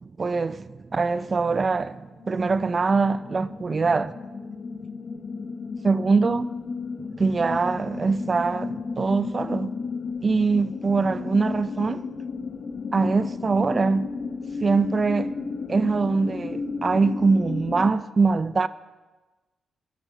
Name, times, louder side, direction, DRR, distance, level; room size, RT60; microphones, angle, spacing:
voice 1, 0.0-4.2 5.8-6.5 7.2-9.7 10.2-12.1 12.9-14.1 14.6-15.3 15.7-18.7, right 4 dB, 40° right, 0.4 m, -23 dB
sound 1, 1.5-1.9 2.2-17.9, left 4 dB, 50° left, 0.7 m, -34 dB
10.0 x 9.1 x 6.4 m
cardioid pair, 85°, 0 cm